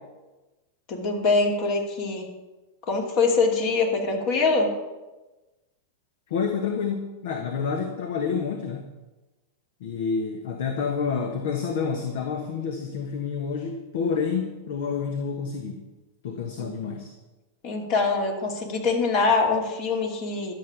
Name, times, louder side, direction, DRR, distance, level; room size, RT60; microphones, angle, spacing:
voice 1, 0.9-2.3 2.9-4.7 16.6-16.7 17.6-20.5, left 4 dB, 50° left, 1 dB, 2.7 m, -24 dB
voice 2, 6.3-8.9 9.8-15.9 16.2-17.1, left 6 dB, 65° left, 4 dB, 1.3 m, -29 dB
12.0 x 7.2 x 6.1 m, 1.1 s
hypercardioid pair, 100°, 0 cm